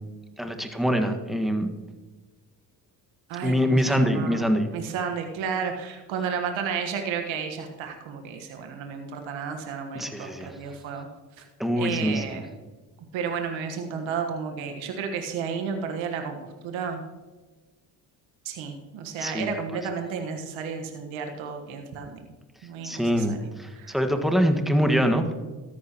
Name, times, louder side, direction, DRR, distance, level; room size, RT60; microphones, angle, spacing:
voice 1, 0.4-1.7 3.4-4.7 9.9-10.6 11.6-12.4 19.2-19.5 22.8-25.3, equal, ahead, 5 dB, 1.6 m, -24 dB
voice 2, 3.3-4.5 4.7-11.1 11.4-11.5 11.8-12.5 13.1-17.0 18.4-22.2 22.6-23.4 23.7-24.0, right 6 dB, 75° right, 4 dB, 1.5 m, -32 dB
13.5 x 11.0 x 3.0 m, 1.3 s
supercardioid pair, 60°, 48 cm